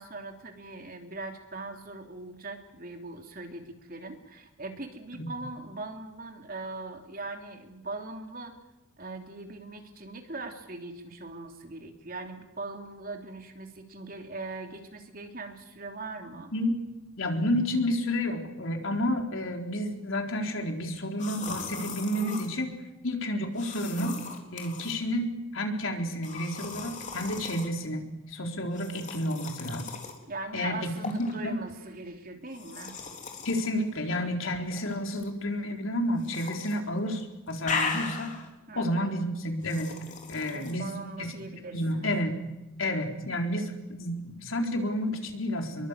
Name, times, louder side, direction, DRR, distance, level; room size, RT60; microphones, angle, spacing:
voice 1, 0.0-8.5 9.0-16.5 30.3-32.9 38.7-39.1 40.4-42.1, right 3 dB, 45° right, 4 dB, 3.2 m, -41 dB
voice 2, 17.2-22.7 23.0-24.2 24.5-28.0 28.3-29.9 30.5-31.6 33.4-38.3 38.7-39.9 40.3-40.9 41.2-41.4 41.7-42.4 42.8-45.9, left 1 dB, 70° left, 3 dB, 4.1 m, -30 dB
sound 1, 21.2-22.5 23.6-25.0 26.2-27.7 28.7-30.2 31.0-31.3 32.5-33.7 34.7-35.3 36.2-36.8 37.1-38.5 39.6-40.7, left 4 dB, 35° left, 4.0 m, -37 dB
27.5 x 22.5 x 8.3 m, 0.96 s
head